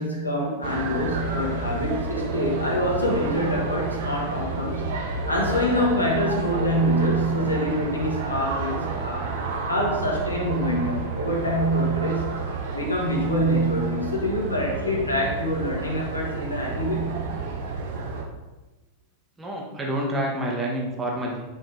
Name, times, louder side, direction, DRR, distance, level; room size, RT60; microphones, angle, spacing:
voice 1, 0.0-5.0 5.3-9.3 9.7-12.4 12.7-17.2, equal, 80° left, -1 dB, 1.7 m, -25 dB
sound 1, 0.6-18.2, right 4 dB, 50° right, 1.2 m, -30 dB
voice 2, 19.4-21.5, right 1 dB, 15° right, -2 dB, 1.8 m, -28 dB
9.2 x 5.9 x 3.5 m, 1.1 s
figure-of-eight pair, 90°, 0 cm